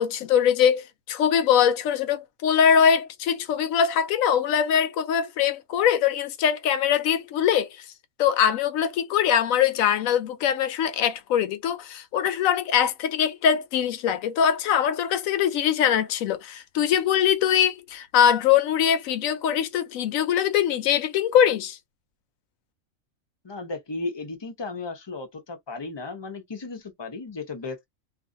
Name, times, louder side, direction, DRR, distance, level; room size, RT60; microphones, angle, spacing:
voice 1, 0.0-7.7 8.2-21.8, left 8 dB, 85° left, 1.0 m, -22 dB
voice 2, 23.4-27.9, left 3 dB, 30° left, 0.5 m, -35 dB
2.5 x 2.4 x 2.5 m
omnidirectional pair, 1.4 m